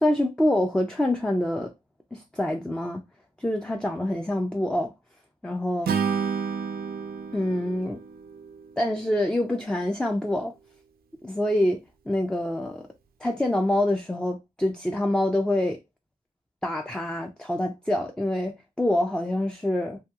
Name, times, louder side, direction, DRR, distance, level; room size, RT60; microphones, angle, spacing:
voice 1, 0.0-1.7 2.1-3.0 3.4-4.9 5.4-6.0 7.3-8.0 8.8-10.5 11.2-12.8 13.2-15.8 16.6-20.0, left 1 dB, 5° left, 0.3 m, -26 dB
Acoustic guitar / Strum, 5.8-9.1, right 6 dB, 85° right, 0.4 m, -30 dB
2.8 x 2.6 x 2.3 m
wide cardioid pair, 90°, 15 cm